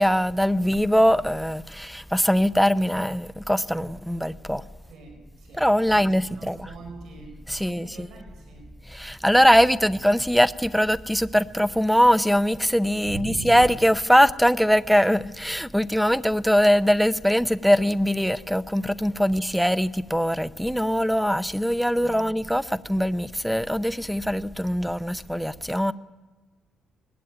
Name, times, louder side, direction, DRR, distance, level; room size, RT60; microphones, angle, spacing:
voice 1, 0.0-4.7 5.5-6.7 7.5-8.1 8.9-25.9, equal, ahead, 0.7 m, -22 dB
voice 2, 4.9-8.7 13.0-13.6 22.0-22.3, right 3 dB, 70° right, 5.2 m, -41 dB
20.0 x 16.5 x 9.5 m
cardioid pair, 90°, 0 cm